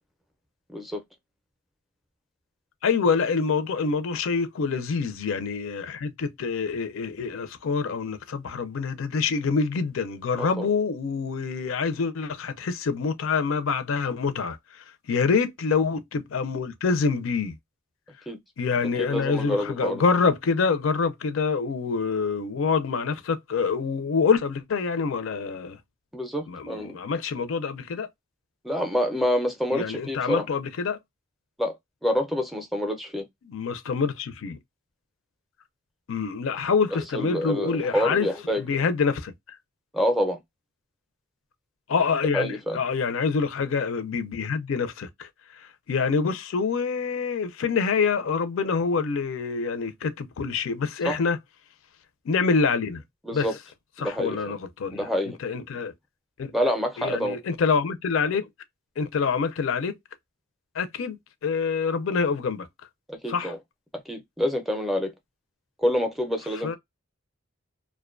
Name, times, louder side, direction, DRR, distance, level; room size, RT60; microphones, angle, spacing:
voice 1, 0.7-1.0 10.4-10.7 18.3-18.4 19.0-20.0 26.1-27.0 28.6-30.5 31.6-31.7 32.0-33.3 37.1-38.6 39.9-40.4 42.3-42.8 51.0-51.2 53.2-53.6 54.0-54.4 54.9-55.4 56.5-57.4 63.1-63.6 64.1-65.1 65.8-66.8, equal, ahead, 0.4 m, -27 dB
voice 2, 2.8-17.6 18.6-25.8 26.5-28.1 29.7-31.0 33.4-34.6 36.1-38.3 38.6-39.3 41.9-51.4 52.2-53.0 53.3-53.5 54.0-55.1 55.4-55.9 56.4-56.5 57.0-58.5 59.0-60.0 60.7-61.2 61.4-62.7 63.3-63.5 66.6-66.8, left 5 dB, 75° left, 0.4 m, -26 dB
2.5 x 2.1 x 2.4 m
head